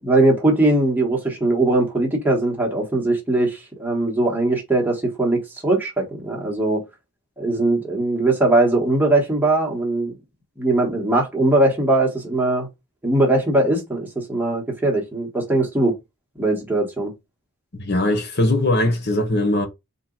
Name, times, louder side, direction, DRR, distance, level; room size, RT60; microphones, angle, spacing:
voice 1, 0.0-6.8 7.4-10.1 10.6-12.7 13.0-16.0 16.4-17.1, right 2 dB, 10° right, 1.3 m, -20 dB
voice 2, 17.8-19.7, left 1 dB, 50° left, 1.0 m, -20 dB
4.4 x 2.9 x 3.9 m
head